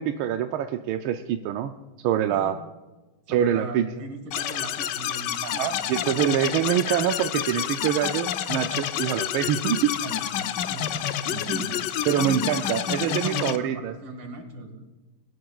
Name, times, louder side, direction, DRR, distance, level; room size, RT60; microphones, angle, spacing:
voice 1, 0.0-1.7 2.0-2.5 3.3-3.9 5.4-9.9 12.1-13.9, right 10 dB, 85° right, 6 dB, 1.5 m, -25 dB
voice 2, 3.3-6.3 10.0-11.7 12.1-14.8, right 2 dB, 65° right, 4 dB, 2.7 m, -38 dB
sound 1, 4.3-13.6, left 10 dB, 70° left, 1.1 m, -29 dB
22.5 x 11.5 x 2.4 m, 1.2 s
omnidirectional pair, 2.2 m